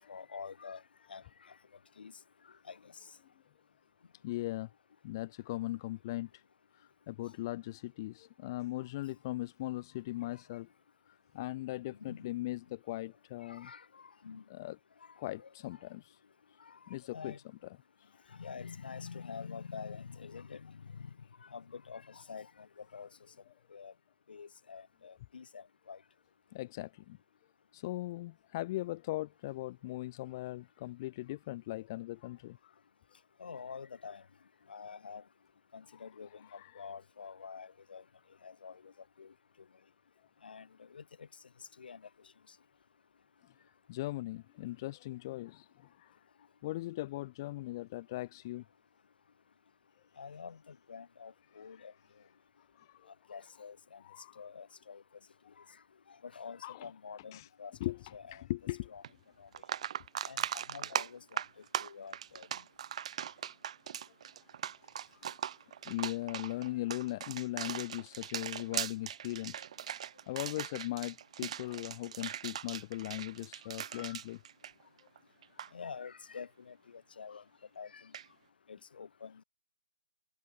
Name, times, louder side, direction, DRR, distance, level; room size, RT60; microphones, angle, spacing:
voice 1, 0.1-0.8 1.1-1.5 2.0-2.1 2.7-2.9 12.0-12.3 13.4-14.4 15.4-15.5 16.6-16.8 17.1-17.4 18.3-21.1 21.4-23.1 23.7-23.9 24.3-26.0 33.4-34.2 34.7-35.2 35.7-38.0 38.4-38.9 39.2-39.3 40.4-41.3 41.8-42.0 50.2-51.9 53.3-54.0 54.4-55.0 55.6-55.7 56.1-57.7 58.1-58.5 58.9-59.0 59.4-59.5 60.2-61.4 61.8-62.5 73.9-74.2 75.7-77.4 77.8-78.1 78.7-79.4, left 6 dB, 50° left, 6.4 m, -47 dB
voice 2, 4.2-4.7 5.0-6.4 6.7-10.7 11.0-13.7 14.5-14.8 15.2-16.2 16.9-17.3 18.1-18.2 26.5-27.2 27.7-32.7 35.9-36.0 36.4-36.9 43.9-46.3 46.6-48.6 51.8-51.9 52.7-53.1 54.0-54.4 56.6-56.9 57.3-57.5 57.8-58.9 63.2-63.5 65.0-65.1 65.8-69.6 70.3-74.4 75.0-75.1, left 17 dB, 20° left, 1.0 m, -39 dB
sound 1, 59.0-59.1 59.5-75.2 75.4-75.7 78.1-78.3, right 9 dB, 30° right, 2.6 m, -40 dB
hypercardioid pair, 175°, 7 cm